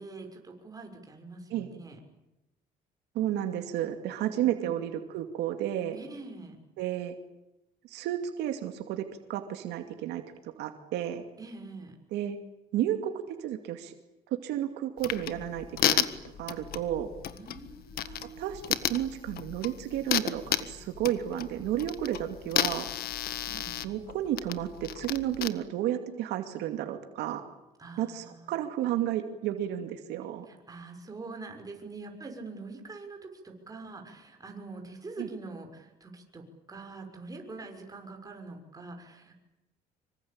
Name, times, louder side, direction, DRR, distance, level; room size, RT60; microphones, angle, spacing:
voice 1, 0.0-2.0 4.2-4.7 5.9-6.6 11.4-12.0 17.3-18.8 23.5-23.8 27.8-28.5 30.4-39.3, right 3 dB, 20° right, 3 dB, 6.4 m, -44 dB
voice 2, 3.1-6.0 6.8-7.2 7.8-10.2 10.6-11.2 12.1-12.4 12.7-13.9 14.3-16.1 16.4-17.1 18.0-22.9 23.8-27.4 28.0-30.5 35.2-35.3, right 12 dB, 85° right, 6 dB, 2.5 m, -32 dB
sound 1, 15.0-25.5, left 11 dB, 65° left, 1.6 m, -33 dB
26.0 x 24.5 x 8.9 m, 0.94 s
cardioid pair, 110°, 17 cm